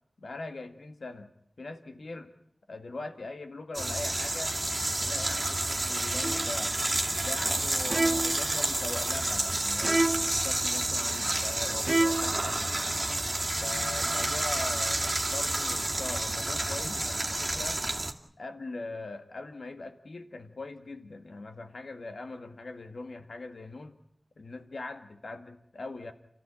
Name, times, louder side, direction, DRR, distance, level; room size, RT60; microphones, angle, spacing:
voice 1, 0.2-1.3 1.6-2.3 2.7-4.6 5.0-6.8 7.1-12.8 13.6-17.8 18.4-24.0 24.4-26.1, left 3 dB, 85° left, 7 dB, 1.8 m, -41 dB
sound 1, 3.7-18.1, right 2 dB, 30° right, 2.4 m, -30 dB
sound 2, 6.2-6.6 7.9-8.5 9.8-10.4 11.9-12.4, right 2 dB, 55° right, 0.9 m, -28 dB
29.5 x 14.5 x 8.8 m, 0.71 s
wide cardioid pair, 75°, 0 cm